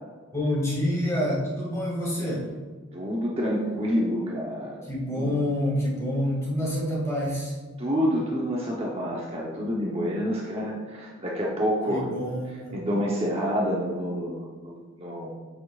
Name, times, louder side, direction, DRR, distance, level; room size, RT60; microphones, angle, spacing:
voice 1, 0.3-2.5 4.8-7.6 11.9-12.8, equal, 15° left, -4 dB, 2.2 m, -27 dB
voice 2, 2.9-4.8 5.1-5.3 7.8-12.1 12.7-15.3, equal, 30° right, -3 dB, 0.9 m, -28 dB
9.1 x 7.2 x 2.5 m, 1.5 s
head